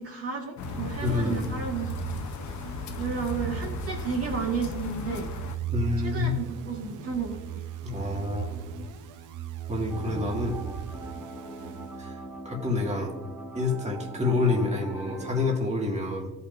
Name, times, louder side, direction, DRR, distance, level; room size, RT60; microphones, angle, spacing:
voice 1, 0.0-2.2 3.0-5.3 6.0-7.4, right 5 dB, 50° right, 0 dB, 1.9 m, -32 dB
sound 1, 0.6-5.6, left 7 dB, 70° left, 0.9 m, -37 dB
sound 2, 0.6-12.4, right 10 dB, 85° right, 0.7 m, -37 dB
voice 2, 1.0-1.4 5.7-6.3 7.8-8.6 9.7-10.6 12.0-12.2 12.4-13.1 13.5-16.3, left 3 dB, 20° right, 0 dB, 2.0 m, -28 dB
sound 3, 9.9-15.6, right 1 dB, 5° right, 1.8 m, -41 dB
15.0 x 5.5 x 2.6 m, 1.0 s
cardioid pair, 90°, 30 cm